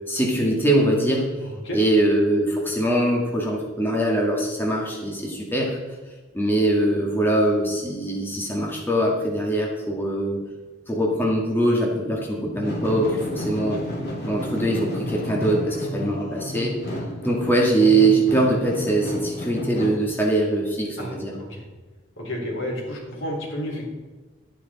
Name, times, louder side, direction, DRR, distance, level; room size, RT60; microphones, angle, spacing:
voice 1, 0.1-1.3 1.7-5.8 6.3-10.4 10.9-13.8 14.2-16.7 17.2-21.3, right 1 dB, 10° left, -3 dB, 2.0 m, -22 dB
voice 2, 1.4-1.8 21.0-21.6 22.2-23.9, left 1 dB, 75° left, -1 dB, 3.6 m, -31 dB
sound 1, 12.5-19.9, left 1 dB, 55° left, 2.8 m, -31 dB
12.5 x 9.8 x 4.2 m, 1.3 s
head